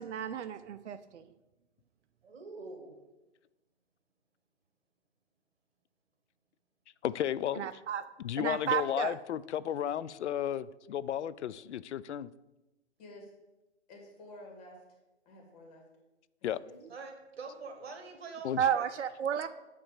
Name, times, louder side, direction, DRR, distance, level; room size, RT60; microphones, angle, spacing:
voice 1, 0.0-1.3 7.5-8.1 8.4-9.2 18.6-19.5, right 9 dB, 80° right, 9 dB, 0.5 m, -32 dB
voice 2, 2.2-3.0 16.9-18.9 19.3-19.4, right 4 dB, 60° right, 5 dB, 1.8 m, -45 dB
voice 3, 7.0-7.7 8.2-12.3 16.4-16.6 18.4-18.6, left 10 dB, 75° left, 17 dB, 0.5 m, -33 dB
voice 4, 13.0-13.3 13.9-15.0 15.3-15.8 16.4-16.8, left 1 dB, 30° left, 0 dB, 1.9 m, -51 dB
9.2 x 3.3 x 6.6 m, 1.1 s
hypercardioid pair, 150°, 35 cm